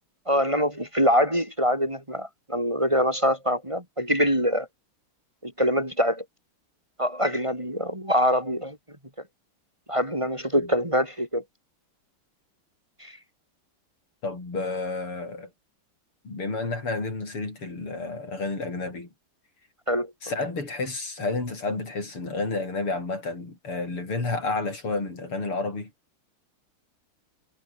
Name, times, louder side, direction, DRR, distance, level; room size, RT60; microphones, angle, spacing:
voice 1, 0.3-4.7 5.4-6.2 7.0-8.8 9.9-11.4 13.0-13.2 19.9-20.1, equal, 15° right, 4.1 m, -24 dB
voice 2, 14.2-15.5 16.2-19.1 20.2-25.9, left 3 dB, 85° left, 7.3 m, -30 dB
omnidirectional pair, 2.4 m